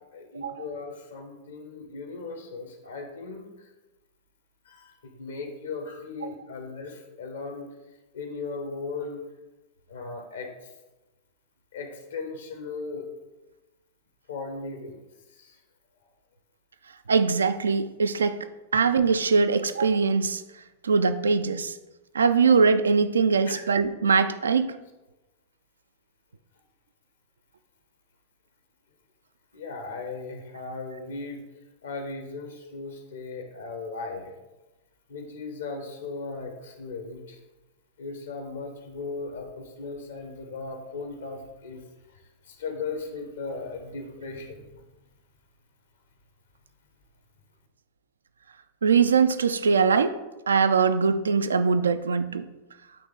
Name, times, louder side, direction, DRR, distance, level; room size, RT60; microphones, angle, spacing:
voice 1, 0.1-3.5 4.7-7.7 8.1-9.2 9.9-10.5 11.7-13.1 14.3-15.0 15.4-15.6 23.5-23.6 29.5-31.4 31.8-34.3 35.1-37.4 38.0-41.8 42.5-44.6, left 4 dB, 65° left, 5 dB, 0.9 m, -37 dB
voice 2, 17.1-18.4 18.7-20.4 20.8-21.7 22.1-24.7 48.8-50.2 50.5-52.4, right 5 dB, 70° right, 11 dB, 0.3 m, -22 dB
8.4 x 3.1 x 3.7 m, 1.1 s
figure-of-eight pair, 90°, 0 cm